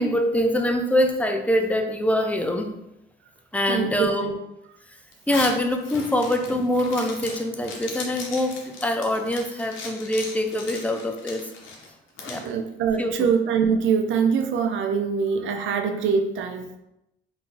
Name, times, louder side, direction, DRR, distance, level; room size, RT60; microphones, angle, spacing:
voice 1, 0.0-2.7 3.5-4.3 4.9-5.0 5.3-11.5 12.3-12.4 13.0-13.3, left 1 dB, 5° left, 5 dB, 0.5 m, -24 dB
voice 2, 3.7-4.3 12.4-16.7, right 6 dB, 75° right, 5 dB, 0.6 m, -23 dB
Zipper (clothing), 5.1-12.5, left 4 dB, 75° left, 0.9 m, -37 dB
4.0 x 2.7 x 3.8 m, 0.86 s
cardioid pair, 90°, 20 cm